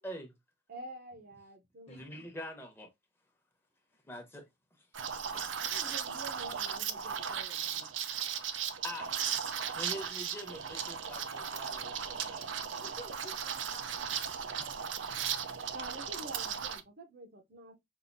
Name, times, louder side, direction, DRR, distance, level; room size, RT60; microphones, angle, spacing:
voice 1, 0.0-0.3 1.9-2.9 4.0-4.4 4.8-4.9 8.8-9.1 9.7-12.5 15.7-15.8, equal, 10° left, 0.9 m, -44 dB
voice 2, 0.7-2.0 5.7-7.9 14.5-14.7 15.1-15.3 15.7-17.8, right 1 dB, 55° right, 0.8 m, -48 dB
Liquid, 4.9-16.8, right 7 dB, 85° right, 0.6 m, -36 dB
voice 3, 5.3-5.7 12.7-14.1 14.3-14.8, left 1 dB, 35° left, 1.2 m, -54 dB
5.4 x 2.6 x 2.6 m
head